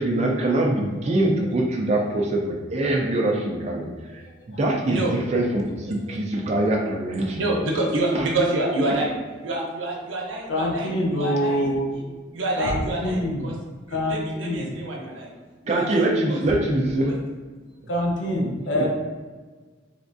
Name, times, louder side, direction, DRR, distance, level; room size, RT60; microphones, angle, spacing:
voice 1, 0.0-7.4 8.1-8.2 15.7-17.2 18.7-18.8, right 1 dB, 35° right, -1 dB, 0.3 m, -23 dB
voice 2, 7.4-9.2 9.4-13.5 13.9-15.3 15.6-16.4 17.0-17.1, right 2 dB, 80° right, -2 dB, 0.7 m, -28 dB
voice 3, 10.5-11.9 12.6-13.5 13.9-14.7 17.9-18.9, equal, 75° left, -1 dB, 0.6 m, -25 dB
3.4 x 3.0 x 2.5 m, 1.4 s
head